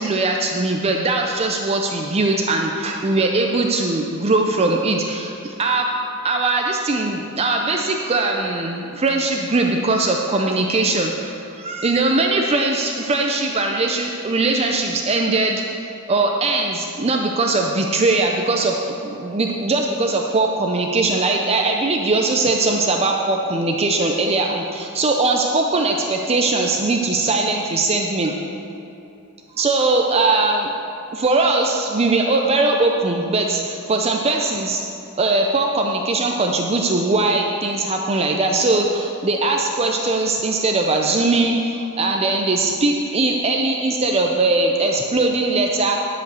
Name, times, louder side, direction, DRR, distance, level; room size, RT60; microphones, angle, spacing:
voice 1, 0.0-5.9 6.2-15.6 16.1-18.7 19.0-28.4 29.5-30.7 31.1-34.8 35.2-46.0, right 2 dB, 30° right, 1 dB, 0.5 m, -20 dB
10.5 x 5.1 x 6.9 m, 2.7 s
head